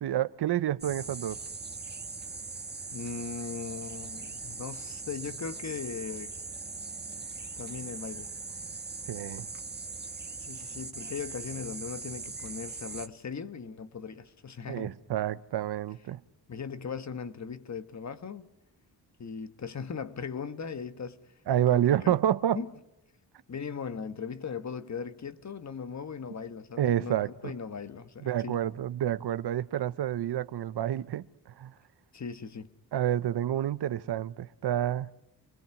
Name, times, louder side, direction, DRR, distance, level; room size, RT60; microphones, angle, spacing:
voice 1, 0.0-1.4 9.1-9.5 14.7-16.2 21.5-22.6 26.8-27.5 28.2-31.3 31.6-31.7 32.9-35.1, right 11 dB, 85° right, 0.8 m, -28 dB
sound 1, 0.8-13.1, right 4 dB, 25° right, 1.5 m, -40 dB
voice 2, 2.9-6.3 7.6-8.3 10.4-14.9 16.5-18.5 19.2-21.3 21.7-22.1 22.5-22.7 23.5-28.6 32.1-32.7, left 6 dB, 45° left, 1.3 m, -38 dB
27.0 x 20.0 x 6.0 m
wide cardioid pair, 100°, 39 cm